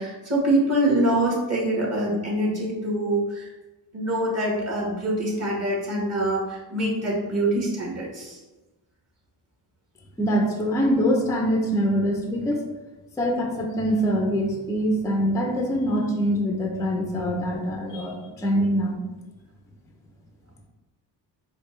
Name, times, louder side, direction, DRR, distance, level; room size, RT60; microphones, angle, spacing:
voice 1, 0.0-3.5 3.9-8.4, right 1 dB, 35° right, -3 dB, 1.4 m, -24 dB
voice 2, 10.2-12.6 13.2-19.0, equal, 5° left, 1 dB, 0.5 m, -24 dB
4.2 x 2.3 x 3.1 m, 1.1 s
cardioid pair, 75°, 45 cm